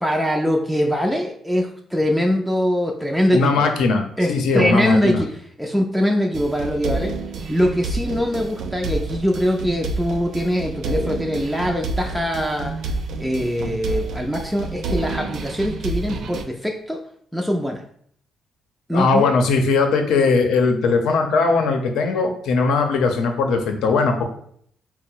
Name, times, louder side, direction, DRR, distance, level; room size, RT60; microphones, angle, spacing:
voice 1, 0.0-3.6 4.2-5.3 5.6-7.1 7.5-12.8 13.2-17.0 17.3-17.8 18.9-19.3, equal, ahead, 0 dB, 0.4 m, -22 dB
voice 2, 3.3-5.2 18.9-24.3, left 4 dB, 80° left, 4 dB, 0.6 m, -19 dB
sound 1, 6.3-16.4, right 3 dB, 70° right, 0.4 m, -29 dB
3.9 x 2.0 x 4.4 m, 0.65 s
cardioid pair, 90°, 0 cm